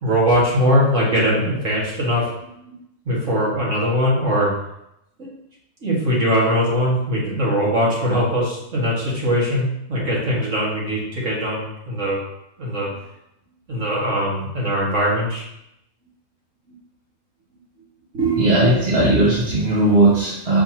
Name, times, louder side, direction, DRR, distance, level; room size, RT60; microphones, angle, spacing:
voice 1, 0.0-2.2 3.1-4.5 5.2-5.3 5.8-12.2 12.6-12.9 13.7-15.4 18.1-19.1, equal, 65° right, -5 dB, 2.3 m, -21 dB
voice 2, 18.2-20.6, right 2 dB, 50° right, -5 dB, 1.4 m, -17 dB
6.5 x 5.5 x 3.0 m, 0.81 s
omnidirectional pair, 1.4 m